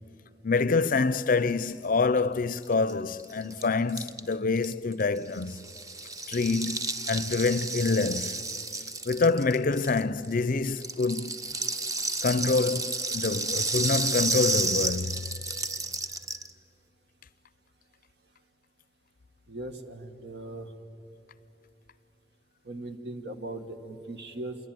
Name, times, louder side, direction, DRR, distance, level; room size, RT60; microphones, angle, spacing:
voice 1, 0.4-5.6 6.3-8.4 9.1-11.4 12.2-15.2, left 4 dB, 50° left, 0.6 m, -26 dB
Rattle (instrument), 2.6-2.7 2.9-3.0 3.2-10.3 10.6-16.5, right 3 dB, 20° right, 0.8 m, -31 dB
voice 2, 19.5-20.7 22.7-24.6, right 2 dB, 70° right, 1.7 m, -39 dB
27.0 x 22.0 x 9.3 m
head